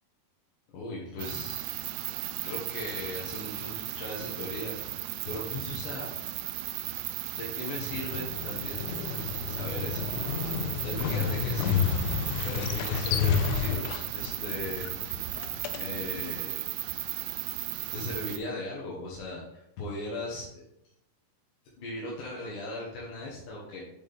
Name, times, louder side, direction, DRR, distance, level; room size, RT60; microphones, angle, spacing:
voice 1, 0.7-1.9 2.4-4.8 5.3-6.2 7.3-8.9 9.5-10.1 10.8-11.8 12.4-14.9 15.2-15.3 15.8-16.6 17.9-20.6 21.8-23.8, left 2 dB, 65° left, -5 dB, 2.2 m, -38 dB
sound 1, 1.2-18.4, right 15 dB, 85° right, 2.6 m, -36 dB
Motorcycle, 7.9-16.2, left 7 dB, 85° left, 2.9 m, -31 dB
10.5 x 4.2 x 3.6 m, 0.81 s
omnidirectional pair, 5.3 m